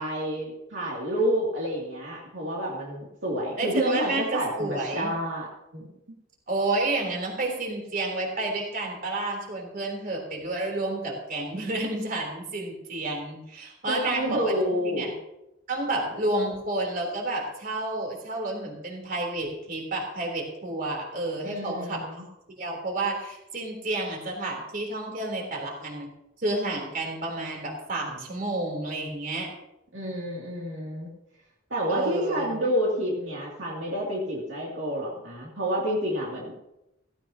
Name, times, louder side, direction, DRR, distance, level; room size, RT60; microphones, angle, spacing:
voice 1, 0.0-5.9 13.9-15.1 21.4-22.3 29.9-31.1 31.7-36.5, equal, 65° right, -4 dB, 2.7 m, -29 dB
voice 2, 3.6-5.1 6.5-14.5 14.8-15.1 15.7-22.0 22.6-26.1 26.4-29.5 31.9-32.5, right 2 dB, 45° right, 0 dB, 3.6 m, -30 dB
16.0 x 16.0 x 2.9 m, 0.90 s
head